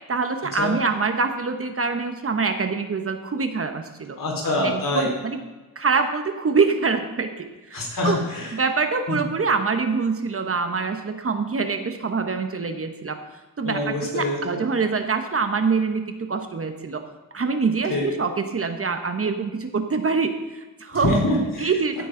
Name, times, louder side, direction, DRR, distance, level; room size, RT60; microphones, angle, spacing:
voice 1, 0.1-4.2 4.6-5.4 5.8-8.2 8.5-13.2 13.6-16.0 16.3-17.0 17.3-21.2 21.6-22.0, right 4 dB, 40° right, 7 dB, 1.0 m, -25 dB
voice 2, 4.2-5.1 7.7-8.5 9.1-9.2 13.6-14.6 17.9-18.1 21.0-21.7 22.0-22.1, left 1 dB, 65° left, -2 dB, 4.4 m, -25 dB
15.0 x 10.0 x 3.9 m, 1.2 s
wide cardioid pair, 125°, 36 cm